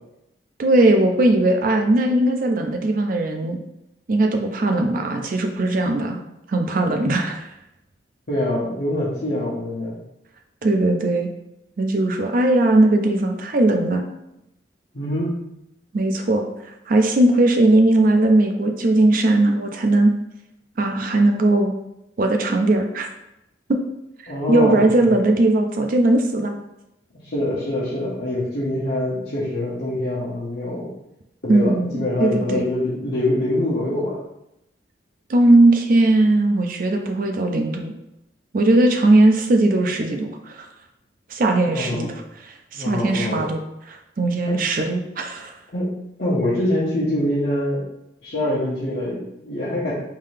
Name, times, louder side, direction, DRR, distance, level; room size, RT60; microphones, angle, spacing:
voice 1, 0.6-3.6 4.1-6.2 6.5-7.5 10.6-11.3 11.8-14.0 15.9-16.5 16.9-20.1 20.8-21.7 22.2-23.1 23.7-23.8 24.2-26.5 31.5-32.7 35.3-37.9 38.5-40.7 41.3-43.6 43.9-45.5, right 2 dB, 50° right, 4 dB, 0.4 m, -19 dB
voice 2, 8.3-10.0 14.9-15.3 24.3-25.1 27.2-30.9 31.4-34.2 41.7-42.1 42.7-43.4 44.5-44.6 45.7-45.9 46.2-47.8 48.2-49.9, left 1 dB, 60° left, -10 dB, 1.0 m, -24 dB
3.7 x 2.7 x 3.3 m, 0.85 s
head